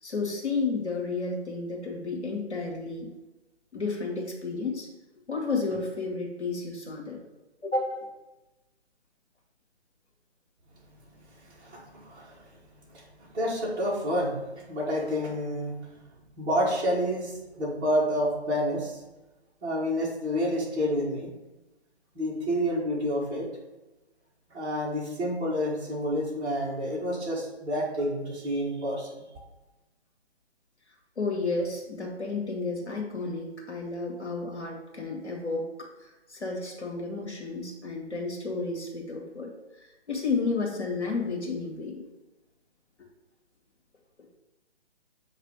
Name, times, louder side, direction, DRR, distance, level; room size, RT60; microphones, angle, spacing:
voice 1, 0.0-3.1 3.7-4.9 5.3-7.2 7.6-7.9 31.2-42.0, left 3 dB, 85° left, -1 dB, 1.7 m, -32 dB
voice 2, 11.5-12.5 12.9-15.8 16.4-19.0 19.6-21.3 22.1-23.5 24.5-29.2, equal, 15° right, -7 dB, 1.5 m, -29 dB
7.1 x 3.3 x 5.0 m, 1.1 s
figure-of-eight pair, 140°, 33 cm